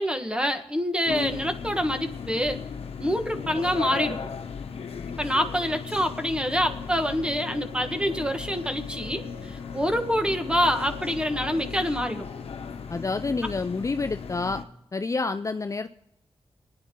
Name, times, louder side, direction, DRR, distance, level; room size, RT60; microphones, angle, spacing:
voice 1, 0.0-2.6 3.0-4.2 5.2-12.3, equal, 10° right, 7 dB, 1.5 m, -26 dB
sound 1, 1.1-14.6, left 6 dB, 80° left, 1.1 m, -36 dB
sound 2, 6.7-11.9, left 2 dB, 70° right, 7.6 m, -48 dB
voice 2, 12.9-14.6 14.9-15.9, left 3 dB, 30° left, 9 dB, 0.5 m, -28 dB
25.5 x 10.0 x 3.8 m, 0.83 s
cardioid pair, 70°, 10 cm